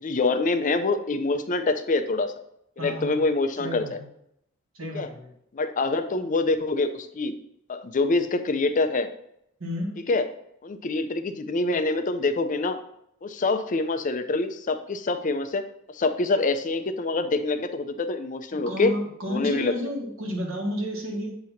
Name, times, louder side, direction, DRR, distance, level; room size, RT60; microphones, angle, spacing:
voice 1, 0.0-2.3 2.8-4.0 4.9-5.1 5.5-7.4 7.7-9.1 10.1-10.3 10.6-12.8 13.2-15.6 15.9-18.9 19.3-19.7, left 3 dB, 40° left, 9 dB, 0.5 m, -25 dB
voice 2, 2.8-3.2 3.6-4.1 4.7-5.3 9.6-9.9 18.7-21.4, left 1 dB, 85° right, 1 dB, 1.6 m, -31 dB
7.8 x 2.9 x 5.7 m, 0.75 s
head